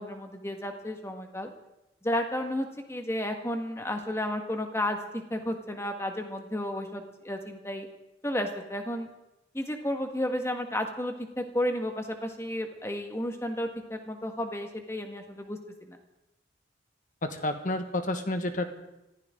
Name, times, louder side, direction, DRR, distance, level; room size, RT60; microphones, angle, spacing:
voice 1, 0.0-1.5 2.0-7.9 8.2-9.1 9.5-16.0, left 1 dB, 15° left, 4 dB, 1.7 m, -32 dB
voice 2, 17.2-18.7, left 1 dB, 45° left, 6 dB, 1.6 m, -30 dB
24.5 x 15.5 x 3.8 m, 0.92 s
head